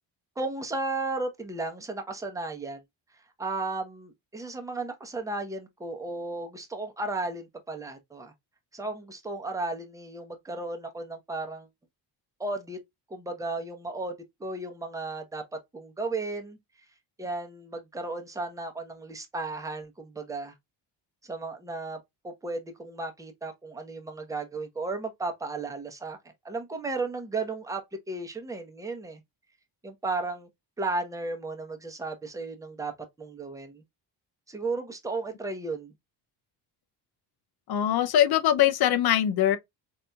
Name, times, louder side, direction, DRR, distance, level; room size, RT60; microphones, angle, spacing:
voice 1, 0.4-2.8 3.4-8.3 8.7-11.7 12.4-12.8 13.1-15.4 15.7-16.6 17.2-20.5 21.2-26.2 26.4-27.8 28.1-29.2 29.8-30.5 30.8-32.9 33.2-33.8 34.5-35.9, right 3 dB, 5° right, 0.8 m, -34 dB
voice 2, 37.7-39.6, left 11 dB, 55° left, 0.6 m, -22 dB
4.1 x 2.7 x 2.2 m
cardioid pair, 80°, 46 cm